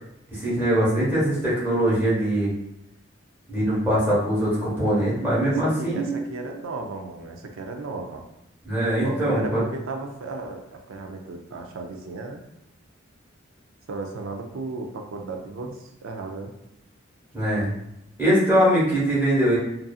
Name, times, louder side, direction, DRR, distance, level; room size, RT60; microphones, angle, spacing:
voice 1, 0.3-2.5 3.5-6.2 8.6-9.6 17.3-17.7 18.2-19.6, right 1 dB, 10° right, -9 dB, 1.1 m, -22 dB
voice 2, 5.4-8.2 9.0-12.4 13.9-16.5, right 3 dB, 85° right, 3 dB, 0.4 m, -35 dB
2.6 x 2.5 x 2.3 m, 0.82 s
head